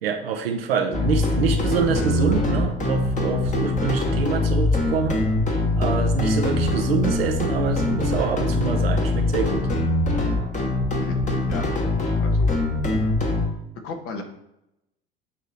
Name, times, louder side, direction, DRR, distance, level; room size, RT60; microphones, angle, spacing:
voice 1, 0.0-5.2 5.8-9.7, right 6 dB, 75° right, 5 dB, 0.9 m, -26 dB
sound 1, 0.9-13.5, left 2 dB, 25° left, 1.3 m, -23 dB
voice 2, 12.2-12.6 13.8-14.2, left 4 dB, 50° left, 4 dB, 1.2 m, -34 dB
8.5 x 3.0 x 4.2 m, 0.84 s
figure-of-eight pair, 70°, 30 cm